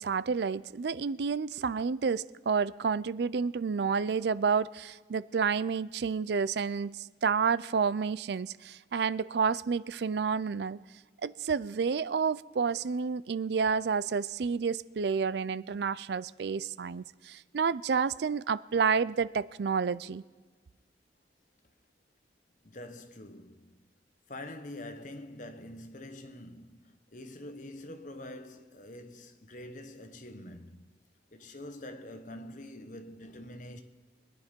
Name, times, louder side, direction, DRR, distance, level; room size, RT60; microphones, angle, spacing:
voice 1, 0.0-10.8 11.2-20.2, right 5 dB, 65° right, 0.4 m, -30 dB
voice 2, 22.6-23.9 24.3-30.9 31.3-33.8, left 1 dB, 45° left, 1.1 m, -45 dB
22.5 x 9.7 x 5.3 m
head